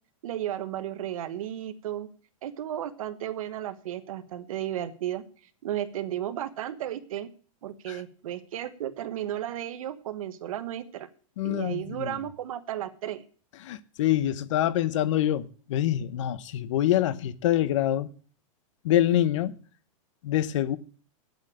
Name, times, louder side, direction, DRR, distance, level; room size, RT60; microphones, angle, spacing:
voice 1, 0.2-2.1 2.4-5.2 5.6-7.3 7.6-11.1 11.4-13.2, right 11 dB, 75° right, 1.4 m, -34 dB
voice 2, 11.4-12.1 13.6-18.1 18.8-19.5 20.2-20.8, left 12 dB, 60° left, 0.9 m, -25 dB
8.9 x 7.9 x 8.7 m
supercardioid pair, 160°, 18 cm